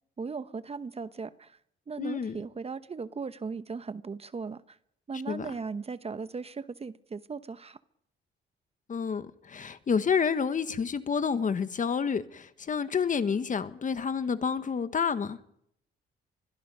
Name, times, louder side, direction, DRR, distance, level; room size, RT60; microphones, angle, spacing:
voice 1, 0.2-1.6 1.9-4.8 5.1-7.8, right 5 dB, 30° right, 0.9 m, -37 dB
voice 2, 2.0-2.4 5.3-5.4 8.9-15.4, left 6 dB, 40° left, 1.3 m, -29 dB
25.5 x 21.5 x 5.5 m
cardioid pair, 90°, 20 cm